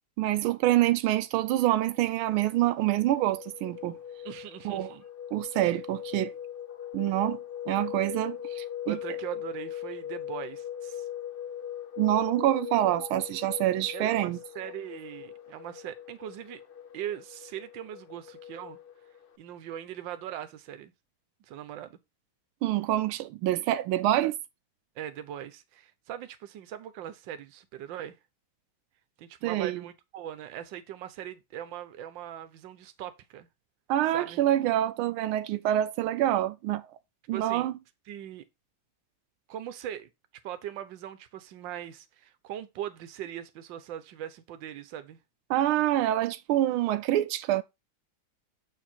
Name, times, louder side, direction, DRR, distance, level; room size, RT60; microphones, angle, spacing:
voice 1, 0.2-4.0 4.6-4.9 5.3-6.3 6.9-7.4 7.7-9.0 12.0-14.4 22.6-24.4 29.4-29.8 33.9-36.8 37.3-37.7 45.5-47.6, right 13 dB, 90° right, 1.4 m, -26 dB
sound 1, 1.6-19.4, left 10 dB, 80° left, 0.5 m, -41 dB
voice 2, 4.2-5.0 5.6-5.8 8.8-11.1 13.9-16.6 16.9-18.8 19.4-20.9 21.5-22.0 25.0-28.2 29.2-33.5 34.1-34.4 37.3-37.7 38.1-38.5 39.5-40.1 40.4-45.2, right 11 dB, 70° right, 1.5 m, -40 dB
7.5 x 4.8 x 4.3 m
omnidirectional pair, 2.2 m